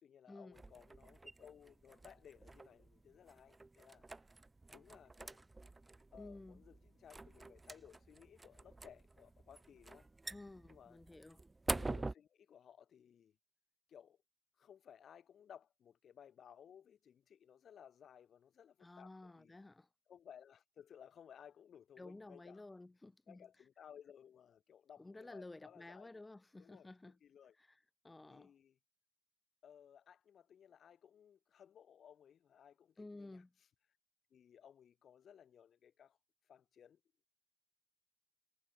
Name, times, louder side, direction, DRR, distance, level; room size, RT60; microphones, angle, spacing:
voice 1, 0.0-4.0 4.7-5.4 6.1-10.1 10.7-11.0 11.7-13.4 13.9-14.2 14.6-19.6 20.1-22.6 23.3-26.2 26.6-27.5 28.3-28.8 29.6-33.4 34.3-36.2 36.5-37.0, left 8 dB, 60° left, 3.2 m, -60 dB
sound 1, 0.5-12.1, right 2 dB, 20° right, 0.7 m, -47 dB
voice 2, 6.2-6.6 10.3-11.4 18.8-19.9 22.0-23.5 25.0-27.2 27.6-28.5 33.0-33.5, left 2 dB, 15° left, 2.5 m, -53 dB
cardioid pair, 90°, 0 cm